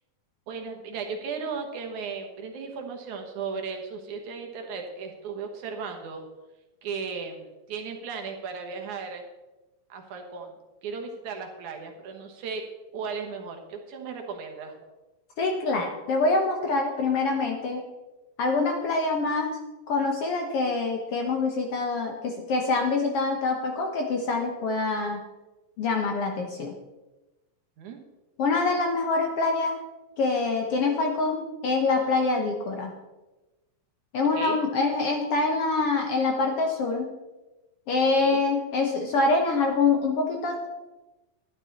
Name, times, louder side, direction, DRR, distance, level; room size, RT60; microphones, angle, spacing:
voice 1, 0.5-6.2 6.8-9.2 9.9-10.5 10.8-12.6 12.9-14.8 27.8-28.0 34.3-34.6 38.2-38.4, right 5 dB, 70° right, 3 dB, 2.7 m, -36 dB
voice 2, 15.4-17.8 18.4-19.5 19.9-25.2 25.8-26.7 28.4-29.8 30.2-32.9 34.1-37.1 37.9-40.7, left 3 dB, 60° left, 2 dB, 1.7 m, -25 dB
12.0 x 11.5 x 4.1 m, 1.1 s
omnidirectional pair, 3.7 m